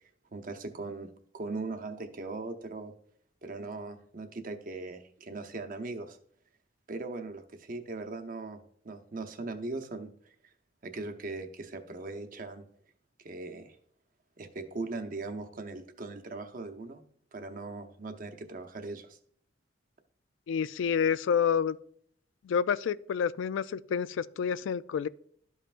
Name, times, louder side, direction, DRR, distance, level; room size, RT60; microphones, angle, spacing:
voice 1, 0.3-2.9 3.4-6.2 6.9-10.5 10.8-12.7 13.2-13.8 14.4-17.0 17.3-19.2, right 3 dB, 45° right, 0.7 m, -39 dB
voice 2, 20.5-21.8 22.4-25.1, left 7 dB, 85° left, 0.3 m, -28 dB
12.5 x 5.5 x 2.5 m
head